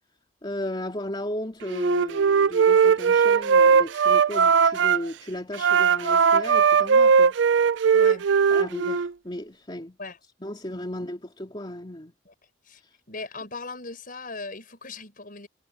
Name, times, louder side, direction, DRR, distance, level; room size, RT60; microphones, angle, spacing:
voice 1, 0.4-7.4 8.5-10.0 10.4-12.1, left 1 dB, 25° left, 2.8 m, -35 dB
Wind instrument woodwind instrument, 1.7-5.0 5.5-9.1, right 6 dB, 75° right, 0.4 m, -19 dB
voice 2, 7.9-8.3 10.0-10.2 10.7-10.8 12.2-12.3 12.6-12.8 13.1-15.5, left 3 dB, 50° left, 6.8 m, -38 dB
head